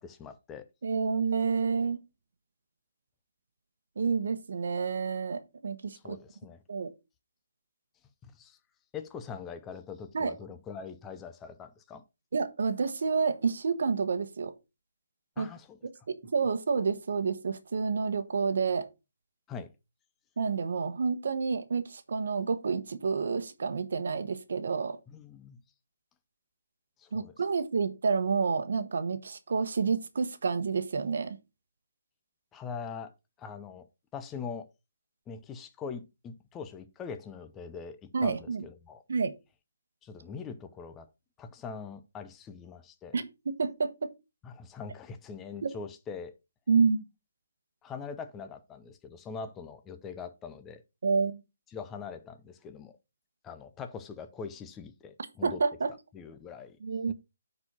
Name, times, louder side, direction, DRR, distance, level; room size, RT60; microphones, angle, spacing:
voice 1, 0.0-0.7 5.9-6.6 8.2-8.6 8.9-12.0 15.4-15.8 19.5-19.7 25.1-25.6 27.0-27.3 32.5-33.1 33.4-33.9 34.1-34.7 35.3-39.0 40.0-41.1 41.4-43.2 44.4-46.4 47.8-50.8 51.7-53.0 53.4-55.6 56.1-56.8 57.1-57.2, left 6 dB, 10° left, 0.6 m, -42 dB
voice 2, 0.8-2.0 4.0-6.2 6.7-6.9 10.1-10.3 12.3-14.5 15.4-15.5 16.1-18.9 20.4-25.0 27.1-31.4 38.1-38.7 39.1-39.3 43.1-44.1 45.6-45.8 46.7-47.0 51.0-51.4 55.4-55.9 56.8-57.1, right 5 dB, 65° right, 1.1 m, -29 dB
9.4 x 4.4 x 4.1 m
hypercardioid pair, 165°, 0 cm